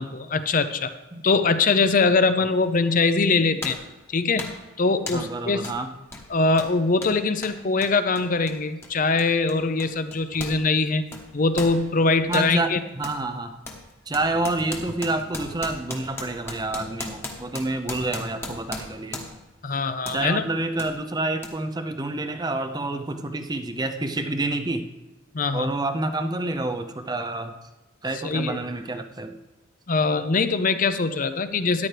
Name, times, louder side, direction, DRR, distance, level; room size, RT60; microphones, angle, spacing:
voice 1, 0.0-0.9 1.2-3.8 4.1-4.5 4.8-5.6 6.3-11.0 11.3-12.8 19.6-20.5 25.3-25.7 28.2-28.6 29.9-31.9, left 3 dB, 40° left, 11 dB, 0.6 m, -22 dB
sound 1, 2.7-2.9 3.6-3.9 4.4-4.7 5.1-5.3 5.6-5.8 6.1-10.6 10.9-12.5 13.0-13.2 13.6-19.5 20.0-20.2 20.8-20.9 21.4-21.5, left 2 dB, 10° left, 1.1 m, -37 dB
voice 2, 5.1-5.9 12.3-13.6 14.1-19.2 20.1-24.9 25.5-27.5 28.0-29.4, right 2 dB, 20° right, 7 dB, 0.6 m, -28 dB
13.5 x 10.5 x 3.3 m, 1.1 s
head